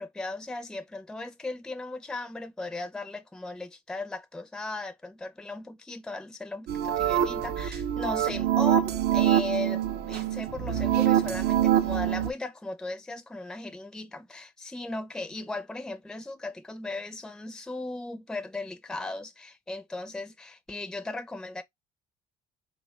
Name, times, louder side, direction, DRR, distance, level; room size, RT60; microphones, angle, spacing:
voice 1, 0.0-21.6, left 2 dB, 5° left, 0.4 m, -37 dB
sound 1, 6.7-12.3, right 11 dB, 70° right, 0.5 m, -25 dB
3.7 x 2.3 x 3.0 m
cardioid pair, 110°, 17 cm